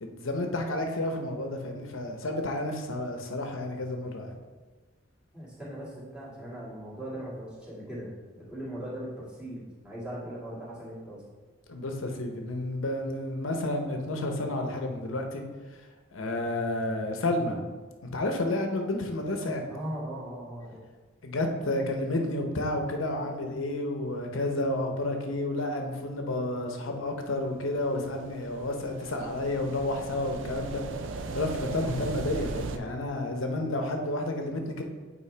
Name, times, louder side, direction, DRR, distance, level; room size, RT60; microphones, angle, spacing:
voice 1, 0.0-4.3 11.7-15.4 16.1-17.6 18.0-19.7 21.2-30.8 31.3-34.8, left 1 dB, 80° left, 4 dB, 0.9 m, -31 dB
voice 2, 5.3-11.2 19.7-20.8, right 1 dB, 5° right, -9 dB, 1.9 m, -39 dB
sound 1, 27.5-32.8, right 3 dB, 70° right, 0.5 m, -38 dB
8.5 x 4.4 x 3.3 m, 1.4 s
head